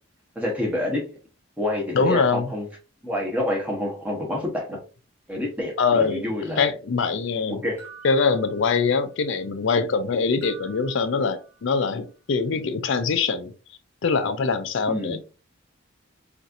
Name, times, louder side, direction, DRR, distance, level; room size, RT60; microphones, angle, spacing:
voice 1, 0.3-1.2 1.6-2.7 3.0-4.8 5.3-6.7 7.5-7.9 14.9-15.2, left 1 dB, 5° right, 0.9 m, -28 dB
voice 2, 1.9-2.5 5.8-6.3 6.6-7.6 8.0-13.5 14.0-15.2, left 5 dB, 60° left, 0.4 m, -23 dB
sound 1, 7.8-9.2 10.4-11.9, right 5 dB, 10° left, 1.3 m, -48 dB
4.1 x 2.5 x 2.4 m
head